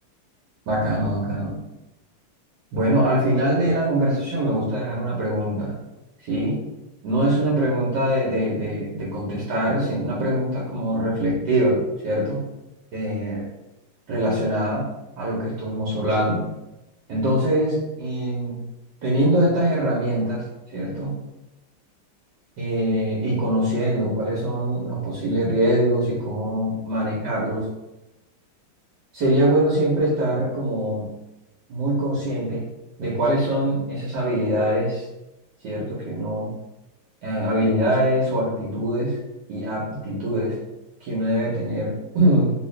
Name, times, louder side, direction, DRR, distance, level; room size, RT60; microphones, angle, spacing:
voice 1, 0.7-1.5 2.7-5.7 6.2-6.6 7.0-12.4 12.9-13.5 14.1-14.8 15.2-16.4 17.1-18.6 19.0-20.4 20.7-21.1 22.6-27.7 29.1-31.1 31.7-32.6 33.0-35.1 35.6-36.5 37.2-39.1 39.5-40.6 41.0-42.5, right 1 dB, 60° right, -5 dB, 1.3 m, -23 dB
3.3 x 3.0 x 3.1 m, 0.95 s
omnidirectional pair, 2.3 m